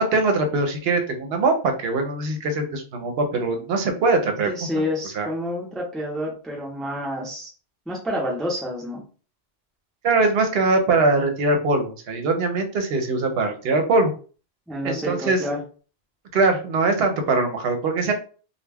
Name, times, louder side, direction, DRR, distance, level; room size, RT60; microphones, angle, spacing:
voice 1, 0.0-4.5 5.1-5.3 10.0-14.1 14.8-15.4 16.3-18.1, right 3 dB, 75° right, 5 dB, 0.8 m, -22 dB
voice 2, 4.5-7.5 7.9-9.0 14.7-15.6, left 1 dB, ahead, -1 dB, 0.5 m, -28 dB
2.2 x 2.1 x 3.3 m, 0.38 s
omnidirectional pair, 1.1 m